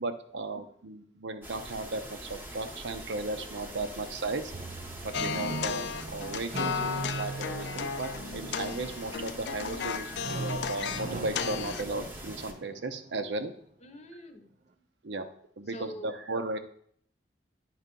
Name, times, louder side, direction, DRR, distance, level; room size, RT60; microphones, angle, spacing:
voice 1, 0.0-4.5 5.0-6.7 7.1-13.5 15.0-15.3 15.6-16.6, right 2 dB, 85° right, 8 dB, 0.7 m, -35 dB
sound 1, 1.4-12.5, right 1 dB, 10° right, 0.8 m, -44 dB
voice 2, 3.8-4.1 13.8-14.8 15.6-16.3, equal, 40° left, 6 dB, 0.8 m, -47 dB
sound 2, 4.5-9.7 10.1-13.2, right 3 dB, 40° right, 0.4 m, -40 dB
sound 3, 5.1-11.9, left 6 dB, 70° left, 0.4 m, -35 dB
9.6 x 3.3 x 5.3 m, 0.63 s
head